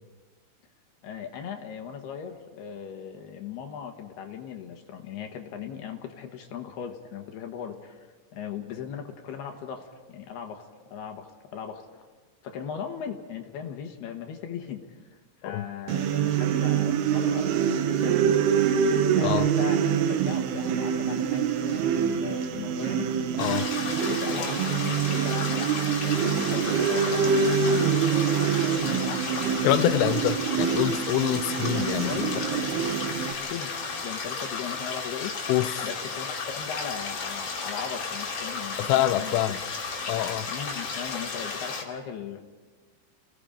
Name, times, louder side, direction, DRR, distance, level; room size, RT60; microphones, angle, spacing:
voice 1, 1.0-10.6 10.9-12.0 12.4-18.2 19.2-19.8 20.1-23.1 23.8-29.2 31.9-33.7 34.0-35.3 35.8-39.4 40.5-42.4, left 8 dB, 65° left, 4 dB, 3.0 m, -38 dB
sound 1, 15.9-33.3, right 7 dB, 70° right, 2.6 m, -25 dB
sound 2, 23.4-41.8, left 4 dB, 45° left, 3.6 m, -33 dB
voice 2, 29.6-32.4 35.5-35.9 38.8-39.6 40.1-40.5, left 13 dB, 90° left, 13 dB, 3.3 m, -26 dB
30.0 x 18.0 x 5.1 m, 1.3 s
omnidirectional pair, 5.5 m